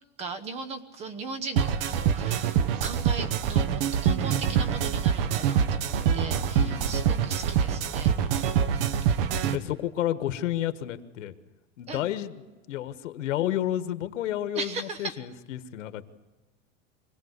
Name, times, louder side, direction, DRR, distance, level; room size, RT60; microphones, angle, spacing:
voice 1, 0.2-8.6 11.9-12.0 14.5-15.1, right 4 dB, 15° right, 13 dB, 1.0 m, -38 dB
sound 1, 1.6-9.6, right 8 dB, 50° right, 1.1 m, -25 dB
voice 2, 6.6-7.0 9.5-11.3 11.8-16.0, left 12 dB, 85° left, 11 dB, 1.6 m, -31 dB
25.0 x 17.5 x 8.2 m, 1.2 s
supercardioid pair, 170°, 37 cm